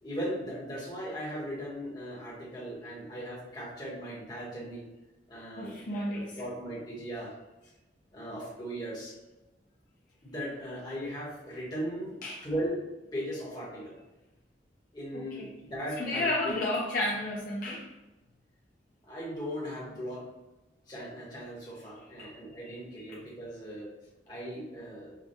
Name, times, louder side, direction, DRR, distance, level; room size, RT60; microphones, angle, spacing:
voice 1, 0.0-4.8 5.3-5.8 6.1-7.3 8.1-9.1 10.2-12.2 12.4-12.8 13.1-13.9 14.9-16.6 19.0-20.3 20.9-23.9 24.3-25.1, equal, 25° left, -6 dB, 1.1 m, -38 dB
voice 2, 5.6-6.4 12.2-12.5 15.1-15.5 16.0-17.9 22.2-22.4 22.6-22.8, left 1 dB, 50° left, -4 dB, 0.5 m, -32 dB
4.9 x 2.2 x 2.7 m, 1.1 s
head